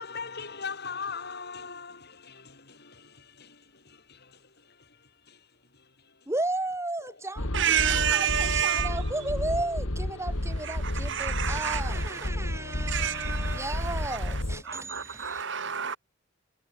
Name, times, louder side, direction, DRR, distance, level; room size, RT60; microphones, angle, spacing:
voice 1, 0.0-5.5 5.7-6.1, left 5 dB, 55° left, 7.8 m, -41 dB
voice 2, 6.3-15.4, right 2 dB, 15° right, 3.2 m, -34 dB
sound 1, 7.4-14.6, left 1 dB, 85° left, 2.9 m, -31 dB
voice 3, 7.5-8.9 10.7-10.8 11.0-12.3 12.9-13.7 14.7-16.0, right 9 dB, 60° right, 2.9 m, -28 dB
head